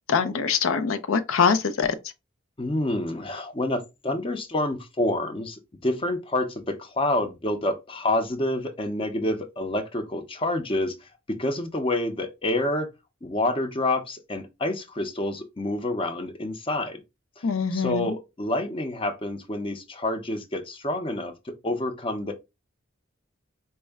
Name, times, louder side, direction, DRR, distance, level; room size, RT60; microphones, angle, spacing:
voice 1, 0.1-1.9 17.4-18.1, left 5 dB, 80° left, 0.5 m, -23 dB
voice 2, 2.6-12.9 13.2-17.0 17.4-17.5 17.7-22.3, left 2 dB, 25° left, 0.6 m, -28 dB
4.3 x 2.1 x 3.4 m
head